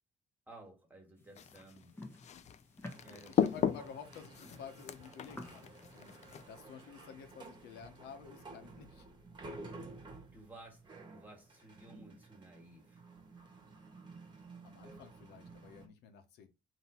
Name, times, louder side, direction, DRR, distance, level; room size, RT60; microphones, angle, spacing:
voice 1, 0.5-1.9 3.0-3.4 10.0-13.0, right 2 dB, 10° right, 1.8 m, -56 dB
sound 1, 1.2-6.7, left 1 dB, 15° left, 1.1 m, -53 dB
sound 2, 1.4-6.4, left 8 dB, 45° left, 0.4 m, -37 dB
sound 3, 2.9-15.9, right 2 dB, 25° right, 1.3 m, -53 dB
voice 2, 3.1-6.1 6.5-9.1 14.6-16.5, left 7 dB, 80° left, 0.9 m, -51 dB
3.8 x 2.8 x 4.3 m
cardioid pair, 110°, 17 cm